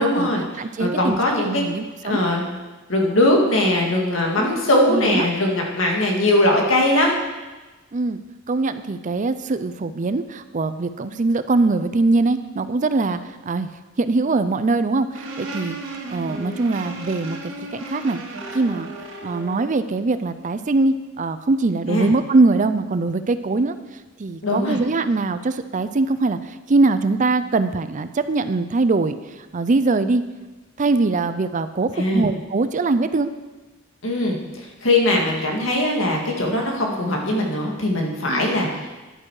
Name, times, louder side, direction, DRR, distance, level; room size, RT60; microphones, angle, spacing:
voice 1, 0.0-0.4 0.8-1.6 2.0-2.5 2.9-7.1 21.9-22.1 24.4-24.8 32.0-32.3 34.0-34.4 34.8-38.9, left 1 dB, 75° left, 0 dB, 2.1 m, -20 dB
voice 2, 0.5-2.2 4.3-5.3 7.9-8.2 8.5-13.7 14.0-15.8 16.1-18.2 18.5-18.9 19.2-23.8 24.2-30.2 30.8-33.3 38.3-38.5, right 3 dB, 40° right, 11 dB, 0.5 m, -22 dB
sound 1, 15.1-19.7, right 2 dB, 70° right, 2.1 m, -34 dB
11.0 x 9.0 x 4.8 m, 1.2 s
head